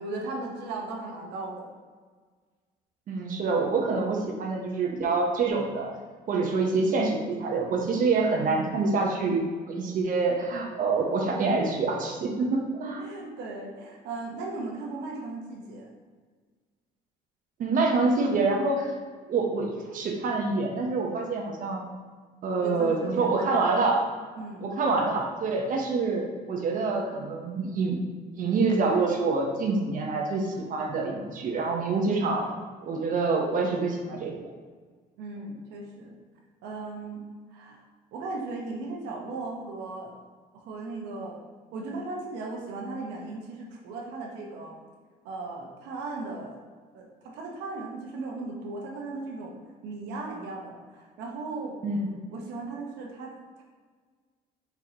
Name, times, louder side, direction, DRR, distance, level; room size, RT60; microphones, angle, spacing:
voice 1, 0.0-1.7 12.9-15.9 22.6-23.6 24.4-24.7 35.2-36.1 36.6-37.3 37.5-37.8 38.1-40.1 40.5-41.4 41.7-44.8 45.2-46.6 46.9-49.5 49.8-51.8 52.3-53.6, right 3 dB, 90° right, 0 dB, 0.9 m, -37 dB
voice 2, 3.1-5.9 6.3-13.0 17.6-18.9 19.3-21.8 22.4-24.0 24.6-28.0 28.4-32.5 32.8-34.3 51.8-52.1, right 3 dB, 55° right, 1 dB, 0.8 m, -26 dB
4.6 x 4.1 x 2.8 m, 1.5 s
cardioid pair, 110°, 17 cm